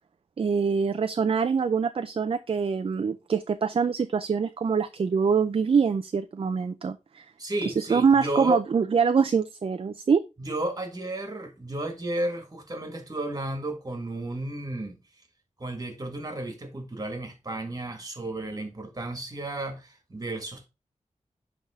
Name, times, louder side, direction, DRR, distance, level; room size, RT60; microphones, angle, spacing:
voice 1, 0.4-7.3 7.7-10.2, right 6 dB, 50° right, 0.4 m, -24 dB
voice 2, 7.4-8.6 10.4-15.0 15.6-20.7, right 1 dB, 30° right, 1.8 m, -33 dB
10.5 x 3.5 x 3.5 m
wide cardioid pair, 100°, 12 cm